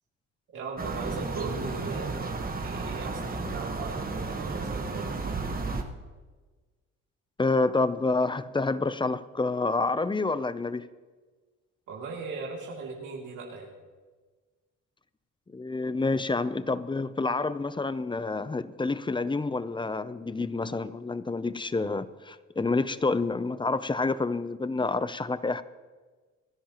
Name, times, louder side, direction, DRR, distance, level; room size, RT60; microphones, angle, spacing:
voice 1, 0.5-5.4 11.9-13.7, right 4 dB, 80° right, -3 dB, 2.9 m, -38 dB
sound 1, 0.8-5.8, right 3 dB, 30° right, 1.4 m, -33 dB
voice 2, 7.4-10.9 15.5-25.6, left 3 dB, 15° left, 14 dB, 0.6 m, -28 dB
28.5 x 10.0 x 3.0 m, 1.4 s
cardioid pair, 90°, 30 cm